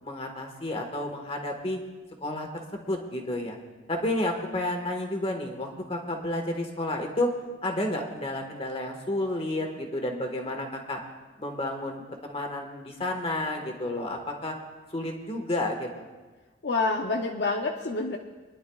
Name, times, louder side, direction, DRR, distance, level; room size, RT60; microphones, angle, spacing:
voice 1, 0.0-1.8 2.2-3.6 3.9-7.3 7.6-11.0 11.4-14.6 14.9-16.1, left 1 dB, 30° left, 2 dB, 1.5 m, -31 dB
voice 2, 16.6-18.2, left 3 dB, 60° left, 2 dB, 0.6 m, -27 dB
26.5 x 10.5 x 2.3 m, 1.3 s
head